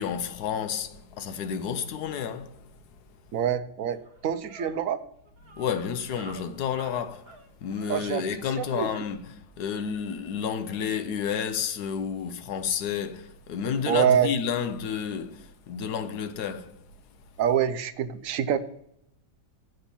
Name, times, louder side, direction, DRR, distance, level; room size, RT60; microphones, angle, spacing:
voice 1, 0.0-2.7 5.5-7.3 7.6-16.8, left 7 dB, 75° left, 1.2 m, -31 dB
voice 2, 3.3-4.0 4.2-5.0 7.9-8.2 8.6-8.9 13.9-14.3 17.4-18.6, right 9 dB, 65° right, 0.9 m, -25 dB
sound 1, 3.4-3.5 3.8-8.8, right 2 dB, 40° right, 1.3 m, -49 dB
8.0 x 5.8 x 6.9 m
omnidirectional pair, 1.8 m